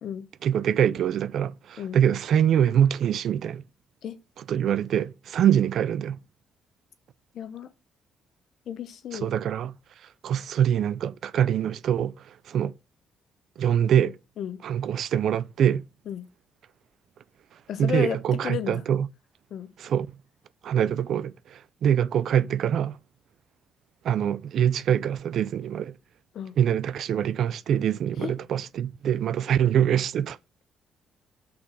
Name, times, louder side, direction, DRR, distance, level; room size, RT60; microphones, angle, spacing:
voice 1, 0.4-3.6 4.5-6.2 9.2-9.8 10.2-12.1 12.5-12.7 13.6-14.2 14.6-15.8 17.8-19.1 19.8-20.1 20.6-22.9 24.0-25.9 26.6-30.4, right 9 dB, 70° right, 0.4 m, -24 dB
voice 2, 7.3-7.7 8.7-9.3 14.4-14.6 16.1-16.2 17.7-18.8 19.5-19.7 26.3-26.5 28.2-28.3, left 8 dB, 70° left, 0.8 m, -33 dB
6.0 x 3.8 x 6.1 m
cardioid pair, 90°, 0 cm